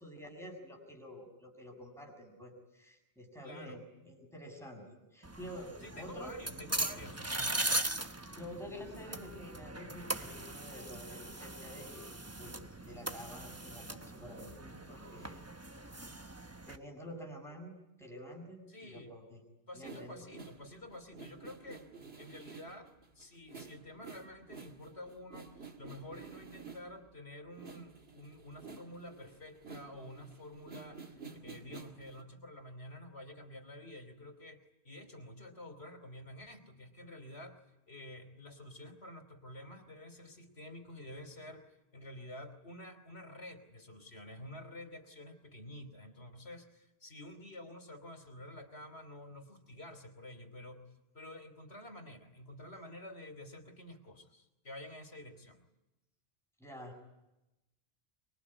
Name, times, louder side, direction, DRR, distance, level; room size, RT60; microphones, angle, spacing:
voice 1, 0.0-4.8 5.1-6.3 8.0-12.1 12.4-15.4 16.7-19.4 19.7-20.3 56.6-57.0, equal, ahead, 2 dB, 6.5 m, -49 dB
voice 2, 3.4-3.8 5.8-7.7 18.7-19.1 19.7-21.9 22.2-50.8 51.1-55.6, left 1 dB, 85° left, 8 dB, 3.4 m, -50 dB
sound 1, 5.2-16.8, right 2 dB, 15° right, 0.9 m, -40 dB
sound 2, 19.8-27.2 27.5-32.2, right 4 dB, 75° right, 2.4 m, -51 dB
25.0 x 23.0 x 9.9 m, 0.96 s
omnidirectional pair, 1.1 m